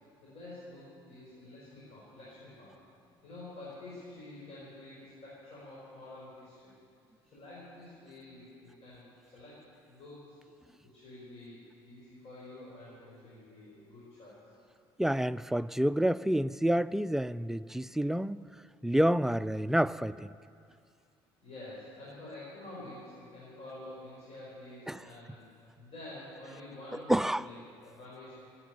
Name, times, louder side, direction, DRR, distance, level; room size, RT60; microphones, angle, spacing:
voice 1, 0.2-2.8 3.2-6.7 7.3-9.0 9.3-9.6 9.9-10.4 10.9-14.5 21.4-25.5 25.8-28.3, left 2 dB, 55° left, 5.3 m, -48 dB
voice 2, 15.0-18.4 18.8-20.3 24.9-25.0 26.9-27.5, right 1 dB, 5° right, 0.3 m, -28 dB
14.5 x 10.0 x 9.1 m
hypercardioid pair, 55°, 13 cm